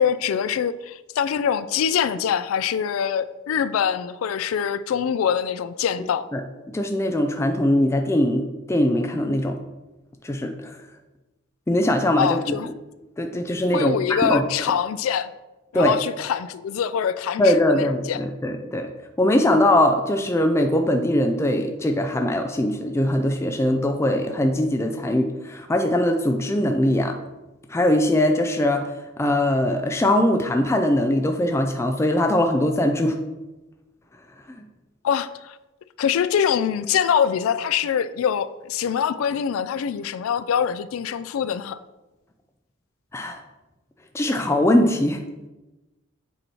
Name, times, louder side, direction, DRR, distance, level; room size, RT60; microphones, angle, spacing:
voice 1, 0.0-6.3 12.2-12.7 13.7-15.3 15.7-18.2 35.0-35.6 36.0-41.8, left 8 dB, 90° left, 15 dB, 0.3 m, -24 dB
voice 2, 6.7-9.6 10.2-10.8 11.7-12.4 13.2-13.9 14.3-14.4 15.7-16.0 17.4-18.9 19.2-27.2 27.7-28.9 29.2-33.2 43.1-43.4 44.1-45.2, left 1 dB, 15° left, 4 dB, 0.3 m, -21 dB
7.8 x 3.0 x 4.2 m, 1.1 s
head